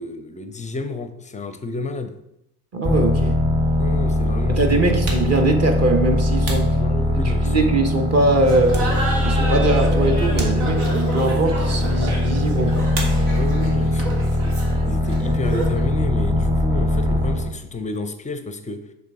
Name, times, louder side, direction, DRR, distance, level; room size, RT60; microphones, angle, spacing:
voice 1, 0.0-2.2 3.8-5.0 6.8-7.5 13.3-14.3 14.9-18.8, left 3 dB, 15° left, 9 dB, 0.5 m, -31 dB
voice 2, 2.7-3.3 4.5-6.8 7.2-8.8 9.2-12.9, right 2 dB, 35° right, 4 dB, 1.2 m, -21 dB
sound 1, 2.8-17.6, left 1 dB, 10° right, 1.2 m, -21 dB
sound 2, 5.0-7.5 8.0-9.4 9.7-9.9 10.3-11.1 12.9-13.7 13.9-14.6 14.9-17.1, right 2 dB, 65° right, 1.8 m, -34 dB
Laughter, 8.4-15.9, right 1 dB, 85° right, 1.5 m, -30 dB
6.6 x 3.5 x 4.8 m, 0.82 s
hypercardioid pair, 80°, 44 cm